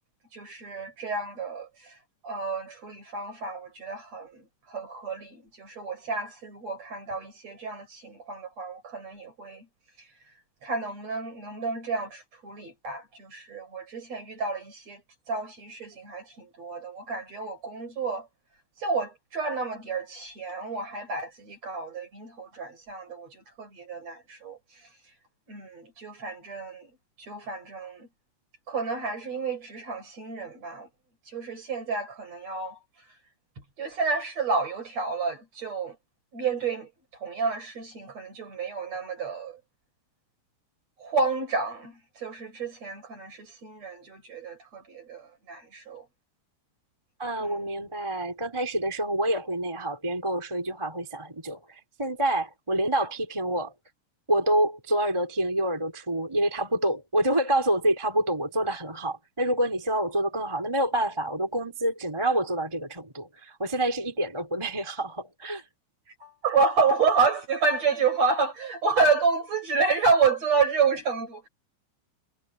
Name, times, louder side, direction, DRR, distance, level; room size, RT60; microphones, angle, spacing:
voice 1, 0.3-2.0 2.2-9.7 10.0-10.1 10.6-15.0 15.3-18.3 18.8-24.9 25.5-26.9 27.2-28.1 28.7-30.9 31.3-32.8 33.8-36.0 36.3-39.6 41.0-46.1 47.4-47.6 66.1-71.5, right 4 dB, 30° right, 7.0 m, -30 dB
voice 2, 47.2-53.7 54.3-65.6, right 1 dB, 5° right, 2.9 m, -27 dB
omnidirectional pair, 5.9 m